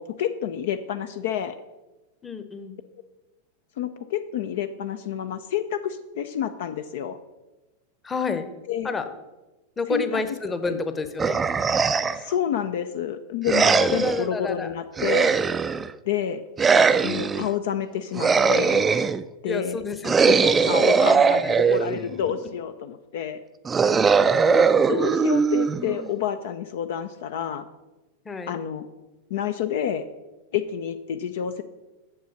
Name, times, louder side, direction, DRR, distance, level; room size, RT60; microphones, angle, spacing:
voice 1, 0.0-1.6 3.8-7.2 8.7-8.9 9.9-10.2 10.7-10.8 12.1-15.4 16.1-16.4 17.0-18.8 19.4-19.8 20.3-23.4 23.8-24.0 24.4-27.7 28.5-28.9 29.3-30.0 30.5-31.6, left 9 dB, 55° left, 9 dB, 0.5 m, -29 dB
voice 2, 2.2-2.8 8.0-8.5 8.8-9.1 9.8-11.4 13.6-14.7 19.4-20.4 20.7-21.7 22.1-22.2 28.2-28.5, left 3 dB, 15° left, 9 dB, 0.9 m, -29 dB
sound 1, 11.2-12.3 13.5-14.2 15.0-15.9 16.6-17.5 18.1-19.2 20.0-22.1 23.7-26.1, right 5 dB, 15° right, 0.4 m, -20 dB
7.9 x 7.0 x 6.4 m, 1.1 s
figure-of-eight pair, 90°, 0 cm